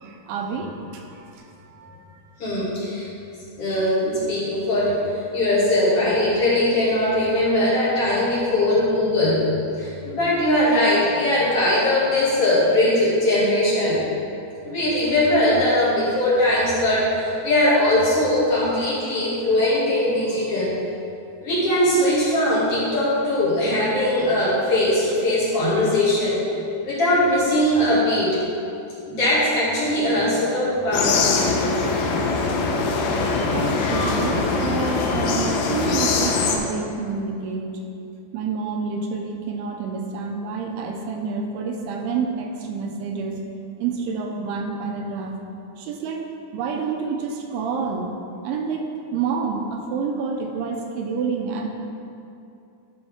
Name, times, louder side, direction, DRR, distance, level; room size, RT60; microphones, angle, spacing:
voice 1, 0.0-1.3 1.7-2.2 33.5-37.8 38.3-43.4 43.8-45.4 45.8-46.2 46.5-48.1 48.4-51.7, right 5 dB, 80° right, 2 dB, 2.5 m, -28 dB
voice 2, 2.4-3.1 3.6-5.0 5.3-14.0 14.6-20.8 21.4-26.4 26.8-28.4 29.1-31.2 33.0-33.4, left 1 dB, 40° left, -9 dB, 2.6 m, -20 dB
sound 1, 30.9-36.6, left 3 dB, 75° left, 2.3 m, -22 dB
13.0 x 5.1 x 3.6 m, 2.6 s
omnidirectional pair, 4.8 m